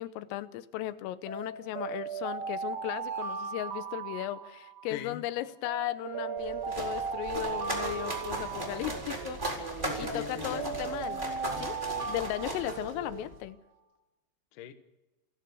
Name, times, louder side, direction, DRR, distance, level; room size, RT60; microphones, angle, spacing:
voice 1, 0.0-9.4 10.0-11.2 11.6-11.8 12.1-13.6, left 14 dB, 90° left, 13 dB, 3.6 m, -36 dB
Alarm, 1.3-5.0 5.7-9.4 10.0-13.3, right 5 dB, 50° right, 3.5 m, -37 dB
voice 2, 4.9-5.2 9.8-11.7 14.5-14.7, left 10 dB, 65° left, 9 dB, 2.1 m, -43 dB
sound 1, 6.0-13.2, right 9 dB, 65° right, 3.8 m, -42 dB
sound 2, 6.4-13.4, right 1 dB, 10° right, 3.7 m, -38 dB
29.5 x 12.5 x 7.0 m, 1.0 s
omnidirectional pair, 5.7 m